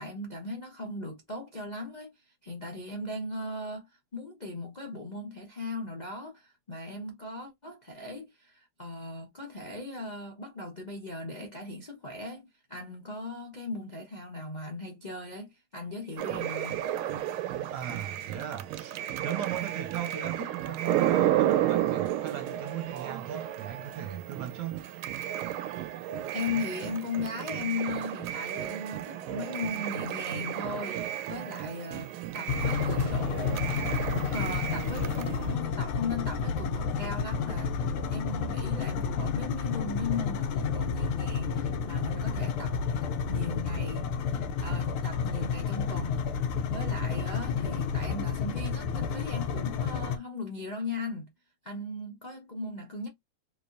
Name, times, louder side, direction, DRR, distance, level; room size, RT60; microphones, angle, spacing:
voice 1, 0.0-3.9 4.1-16.8 26.3-31.0 31.3-33.7 34.3-42.8 43.3-44.1 44.6-46.3 46.7-51.3 51.6-53.1, left 3 dB, 40° left, 0.6 m, -38 dB
sound 1, 16.2-35.6, right 12 dB, 80° right, 1.4 m, -32 dB
voice 2, 17.7-24.9, right 9 dB, 65° right, 1.3 m, -37 dB
sound 2, 32.5-50.2, left 6 dB, 85° left, 1.6 m, -30 dB
3.4 x 3.2 x 2.5 m
omnidirectional pair, 2.3 m